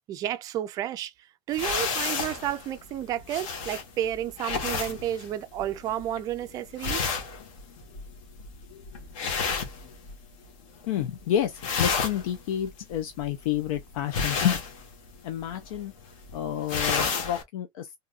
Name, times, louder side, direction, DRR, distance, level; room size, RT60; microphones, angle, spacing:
voice 1, 0.1-7.1, right 11 dB, 20° right, 0.3 m, -31 dB
sound 1, 1.5-10.5 10.8-11.2 11.5-17.4, left 5 dB, 70° left, 1.4 m, -32 dB
voice 2, 10.9-14.6 15.2-15.9 16.3-18.0, left 10 dB, 90° left, 0.7 m, -29 dB
3.9 x 2.6 x 2.4 m
supercardioid pair, 175°, 17 cm